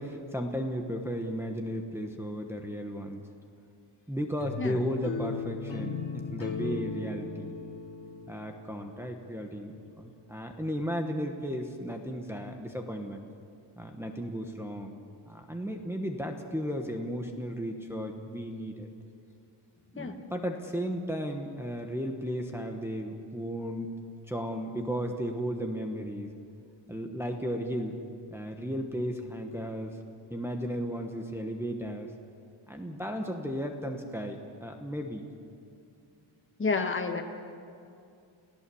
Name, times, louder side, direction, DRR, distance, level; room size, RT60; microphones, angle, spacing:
voice 1, 0.0-3.2 4.1-7.5 8.3-13.2 13.8-14.9 15.3-18.9 19.9-23.9 24.3-26.3 26.9-27.9 28.3-30.0 30.3-32.1 32.7-35.2, equal, 5° right, 2 dB, 1.1 m, -35 dB
sound 1, 4.4-9.3, left 5 dB, 40° left, 2.6 m, -37 dB
voice 2, 36.6-37.2, left 4 dB, 25° left, 4 dB, 1.4 m, -30 dB
30.0 x 15.5 x 7.0 m, 2.5 s
wide cardioid pair, 175°, 50 cm